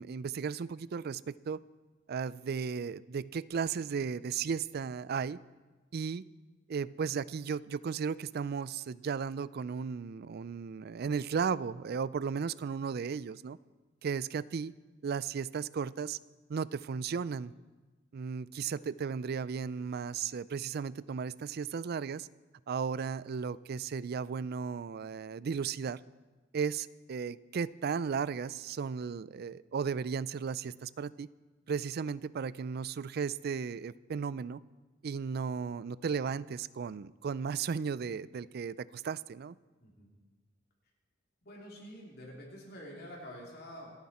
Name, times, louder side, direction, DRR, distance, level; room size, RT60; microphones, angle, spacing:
voice 1, 0.0-1.6 2.1-5.4 5.9-6.2 6.7-13.6 14.0-14.7 15.0-16.2 16.5-17.5 18.1-22.3 22.7-26.0 26.5-31.3 31.7-34.6 35.0-39.6, right 6 dB, 55° right, 19 dB, 0.4 m, -35 dB
voice 2, 39.8-40.1 41.4-43.9, equal, 55° left, -2 dB, 3.0 m, -47 dB
28.0 x 9.5 x 4.3 m, 1.2 s
head